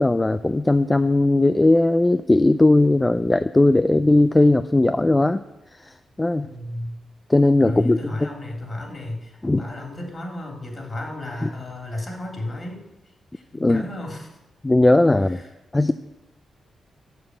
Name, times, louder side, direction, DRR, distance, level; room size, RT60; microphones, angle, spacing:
voice 1, 0.0-5.4 5.8-6.5 7.3-8.3 9.4-9.6 11.4-11.5 13.5-13.9 14.6-15.4 15.7-15.9, left 2 dB, 20° left, 11 dB, 0.4 m, -18 dB
voice 2, 6.4-7.0 7.6-12.8 13.3-14.3 15.1-15.5, left 1 dB, 40° left, 1 dB, 3.3 m, -32 dB
6.9 x 6.8 x 7.6 m, 0.93 s
supercardioid pair, 45°, 0 cm